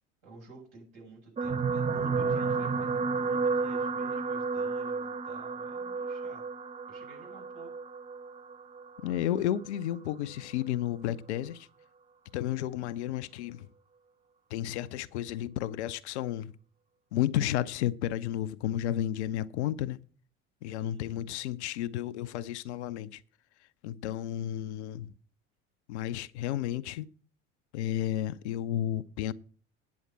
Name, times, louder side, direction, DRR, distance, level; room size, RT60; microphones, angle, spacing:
voice 1, 0.2-6.5 6.9-7.7 20.8-21.2, right 2 dB, 55° right, 6.7 m, -53 dB
sound 1, 1.4-9.8 10.6-10.8 11.1-11.2, right 4 dB, 15° right, 0.6 m, -32 dB
voice 2, 9.0-11.7 12.3-13.7 14.5-16.5 17.1-20.0 20.6-23.2 23.8-25.1 25.9-27.1 27.7-29.3, left 12 dB, 60° left, 0.6 m, -32 dB
9.5 x 7.1 x 7.5 m
figure-of-eight pair, 65°, 38 cm